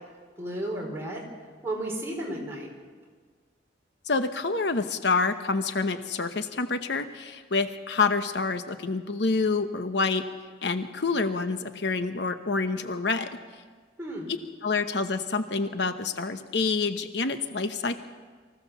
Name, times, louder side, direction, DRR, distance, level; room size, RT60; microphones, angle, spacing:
voice 1, 0.4-1.2 1.6-2.7 14.0-14.3, right 1 dB, 15° right, -2 dB, 4.3 m, -33 dB
voice 2, 4.0-10.2 10.6-13.4 14.6-18.0, left 4 dB, 65° left, 9 dB, 0.9 m, -27 dB
24.0 x 15.5 x 7.1 m, 1.5 s
head